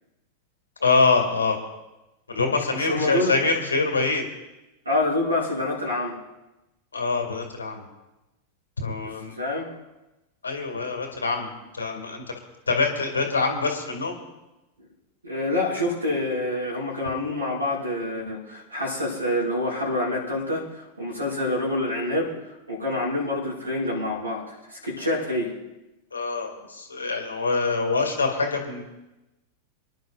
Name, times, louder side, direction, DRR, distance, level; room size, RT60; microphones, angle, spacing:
voice 1, 0.8-1.6 2.3-4.2 6.9-7.8 8.8-9.3 10.4-12.2 12.7-14.2 26.1-28.8, left 4 dB, 80° left, 3 dB, 2.0 m, -25 dB
voice 2, 2.7-3.4 4.8-6.2 9.0-9.7 15.2-25.5, left 1 dB, 85° right, -5 dB, 5.8 m, -27 dB
28.0 x 10.5 x 2.5 m, 1.0 s
figure-of-eight pair, 90°, 0 cm